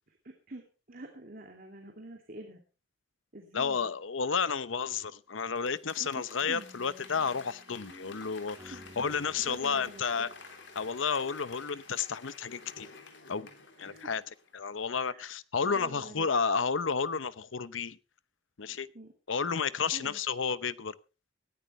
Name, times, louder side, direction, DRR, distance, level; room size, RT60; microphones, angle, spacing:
voice 1, 0.1-2.6 3.3-3.8 6.0-6.1 6.4-6.7 8.7-9.0 9.5-10.3 13.8-14.1 14.9-15.4 15.6-16.3 18.9-19.1 19.9-20.2, right 2 dB, 50° right, 2.5 m, -47 dB
voice 2, 3.5-10.3 10.7-12.9 13.3-13.5 13.8-14.2 14.5-18.0 18.6-18.9 19.3-21.0, left 5 dB, 85° left, 0.8 m, -31 dB
Applause / Crowd, 5.4-14.8 15.2-15.3, left 4 dB, 65° left, 3.5 m, -51 dB
sound 1, 6.4-11.5, equal, 15° right, 2.9 m, -55 dB
18.5 x 14.0 x 3.2 m
head